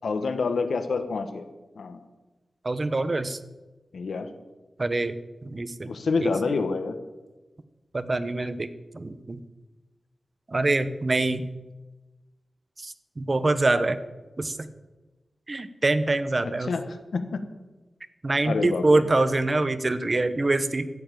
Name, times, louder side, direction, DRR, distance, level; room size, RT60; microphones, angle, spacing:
voice 1, 0.0-1.5 1.8-2.0 3.9-4.3 5.9-7.0 16.4-17.5 18.4-19.0, left 4 dB, 80° left, 9 dB, 1.2 m, -28 dB
voice 2, 2.6-3.4 4.8-5.2 5.4-5.9 6.2-6.3 7.9-8.7 8.9-9.4 10.5-11.5 12.8-14.0 14.4-14.7 15.5-16.7 18.2-20.9, right 2 dB, 30° right, 12 dB, 0.9 m, -25 dB
13.5 x 7.3 x 9.1 m, 1.2 s
wide cardioid pair, 115°, 0 cm